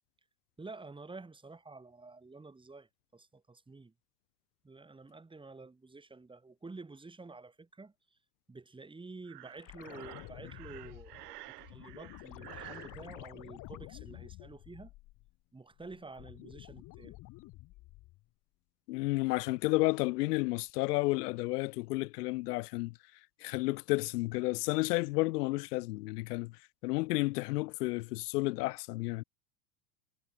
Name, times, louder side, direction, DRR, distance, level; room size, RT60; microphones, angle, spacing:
voice 1, 0.6-3.9 4.6-7.9 8.5-14.9 15.5-17.2, right 3 dB, 10° right, 8.0 m, -50 dB
Breathing, 9.2-13.0, right 17 dB, 80° right, 6.6 m, -50 dB
sound 1, 9.6-15.4 15.7-18.3 20.7-20.8, left 19 dB, 40° left, 1.6 m, -50 dB
voice 2, 18.9-22.9 23.4-26.5 26.8-29.2, left 22 dB, 85° left, 0.5 m, -31 dB
supercardioid pair, 130°, 46 cm